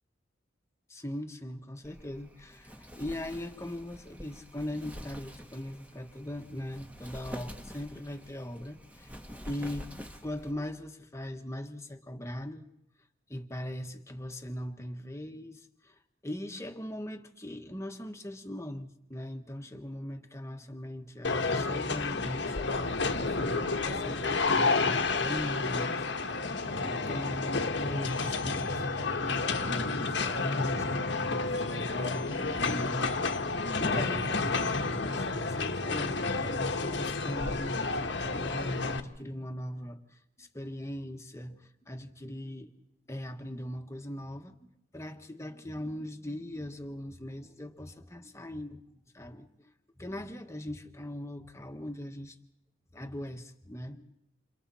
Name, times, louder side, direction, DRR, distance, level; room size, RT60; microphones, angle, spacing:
voice 1, 0.9-9.1 9.4-9.9 10.2-12.6 13.3-26.1 26.8-28.8 29.2-36.2 36.5-42.7 43.1-48.8 49.1-49.5 50.0-52.3 52.9-54.1, left 1 dB, 15° left, 1.5 m, -40 dB
Wind, 1.8-10.5, equal, 10° right, 1.5 m, -47 dB
sound 1, 21.2-39.0, left 3 dB, 65° left, 1.4 m, -30 dB
29.5 x 28.5 x 4.3 m
head